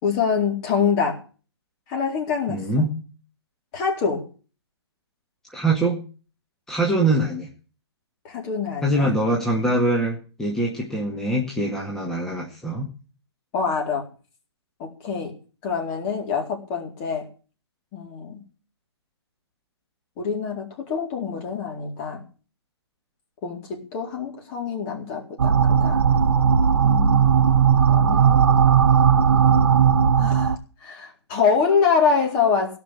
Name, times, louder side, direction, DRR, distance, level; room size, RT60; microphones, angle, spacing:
voice 1, 0.0-1.2 1.9-2.8 3.7-4.3 8.2-9.1 9.6-9.7 13.5-14.0 14.8-15.3 15.6-17.3 17.9-18.4 20.2-22.2 23.4-26.0 26.8-27.3 27.9-28.4 30.2-30.6 30.8-32.8, left 6 dB, 30° left, 1 dB, 4.2 m, -25 dB
voice 2, 2.5-2.9 5.5-6.0 6.7-7.5 8.8-12.9, right 1 dB, 5° left, -3 dB, 1.9 m, -23 dB
sound 1, 25.4-30.6, right 7 dB, 60° right, 1.1 m, -17 dB
17.0 x 6.0 x 8.8 m, 0.37 s
figure-of-eight pair, 130°, 14 cm